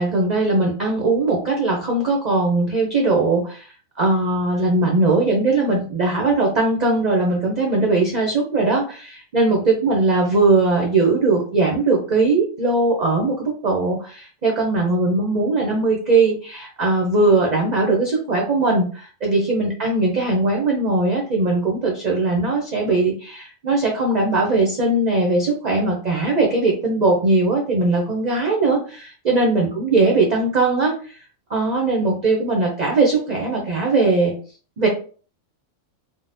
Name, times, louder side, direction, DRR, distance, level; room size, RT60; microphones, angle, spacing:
voice 1, 0.0-31.2 31.5-34.3 34.8-34.9, right 3 dB, 50° right, 0 dB, 0.5 m, -20 dB
3.6 x 2.0 x 2.5 m, 0.40 s
omnidirectional pair, 1.4 m